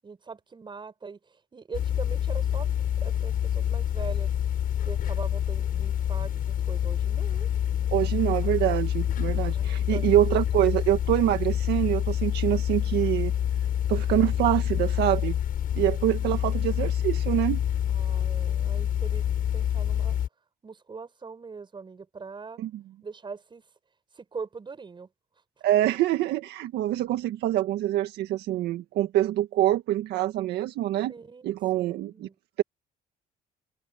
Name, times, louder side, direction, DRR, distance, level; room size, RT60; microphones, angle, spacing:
voice 1, 0.0-4.3 4.9-7.5 9.5-10.2 17.9-19.2 19.5-20.2 20.6-22.6 23.0-23.6 24.1-25.1 31.1-31.5 31.7-32.3, right 5 dB, 30° right, 7.7 m, -42 dB
sound 1, 1.7-20.3, left 10 dB, 55° left, 7.3 m, -27 dB
voice 2, 7.9-13.3 13.9-15.4 15.7-17.6 22.6-22.7 25.6-31.1 31.4-32.3, right 13 dB, 80° right, 1.7 m, -25 dB
cardioid pair, 110°, 17 cm